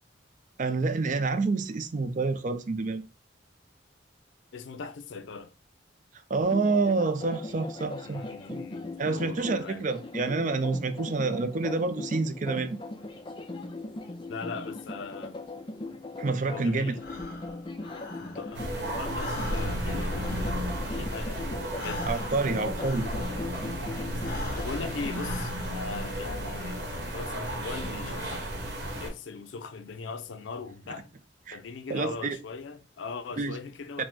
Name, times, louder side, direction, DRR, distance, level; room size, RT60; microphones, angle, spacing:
voice 1, 0.6-3.0 6.3-8.2 8.5-8.6 9.0-12.8 16.2-17.0 22.0-23.1 31.5-31.6 31.9-32.4 33.4-33.5 34.0-34.1, right 3 dB, 45° right, 0.4 m, -28 dB
voice 2, 4.5-5.5 8.0-9.9 14.3-15.4 16.5-17.0 18.2-22.1 23.8-24.3 24.6-28.5 29.0-31.1 31.5-34.0, left 4 dB, 85° left, 0.5 m, -40 dB
sound 1, 6.4-25.2, left 2 dB, 25° left, 0.5 m, -39 dB
Breathing, 17.0-18.7 19.0-23.6 24.1-26.0, left 2 dB, 55° left, 1.2 m, -42 dB
sound 2, 18.5-29.1, equal, 70° right, 1.2 m, -33 dB
4.9 x 2.1 x 3.6 m
head